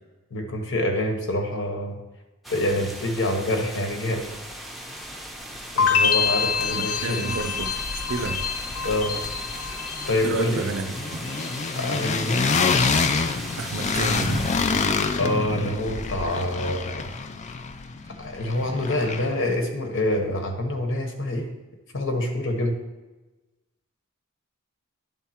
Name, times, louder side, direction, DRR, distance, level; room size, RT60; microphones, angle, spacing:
voice 1, 0.3-2.0 2.5-4.3 5.7-7.3 8.8-9.2 10.1-10.6 11.8-12.5 14.8-17.1 18.2-21.5 21.9-22.8, left 1 dB, 60° left, 3 dB, 1.1 m, -26 dB
sound 1, 2.4-14.6, right 1 dB, ahead, 0.7 m, -38 dB
sound 2, 5.5-5.6 5.9-7.0 7.3-19.5, left 4 dB, 35° left, 0.4 m, -28 dB
sound 3, 5.8-10.8 11.1-11.7, left 6 dB, 85° left, 0.7 m, -26 dB
voice 2, 6.7-7.7 8.1-8.4 10.2-11.2 13.6-14.6, right 4 dB, 65° right, 6 dB, 0.5 m, -30 dB
10.5 x 3.5 x 4.3 m, 1.1 s
head